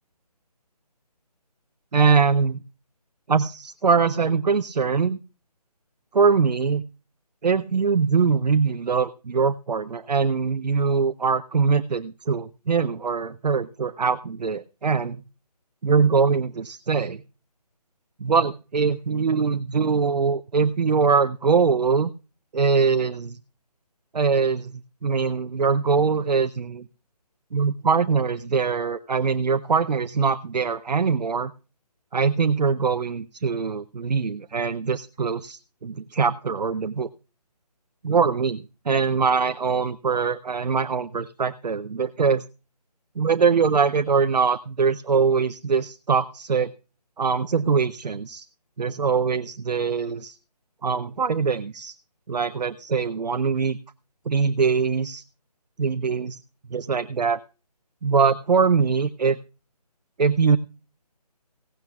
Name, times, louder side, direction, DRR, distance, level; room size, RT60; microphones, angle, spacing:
voice 1, 1.9-2.6 3.3-5.2 6.1-6.9 7.4-15.2 15.8-17.2 18.2-22.1 22.5-23.4 24.1-26.9 27.5-31.5 32.1-37.1 38.0-38.6 38.9-42.4 43.2-46.7 47.2-48.4 48.8-50.4 50.8-51.9 52.3-53.8 54.3-55.2 55.8-56.4 56.7-57.4 58.0-59.4 60.2-60.6, right 5 dB, 80° right, 11 dB, 0.6 m, -22 dB
16.0 x 16.0 x 2.3 m, 0.33 s
figure-of-eight pair, 155°, 21 cm